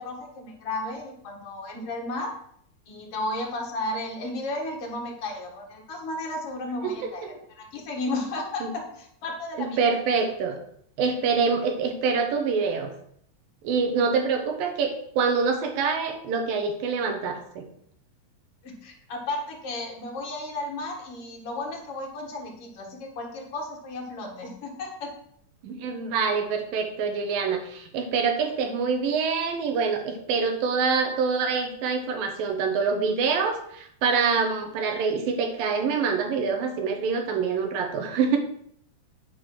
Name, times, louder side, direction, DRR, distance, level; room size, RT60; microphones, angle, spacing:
voice 1, 0.0-2.3 2.9-9.9 18.6-25.1, left 2 dB, 55° left, 1 dB, 2.0 m, -34 dB
voice 2, 9.6-10.6 11.0-12.9 13.6-17.7 25.6-38.4, right 5 dB, 75° right, 5 dB, 2.8 m, -25 dB
9.1 x 4.2 x 6.3 m, 0.68 s
omnidirectional pair, 4.1 m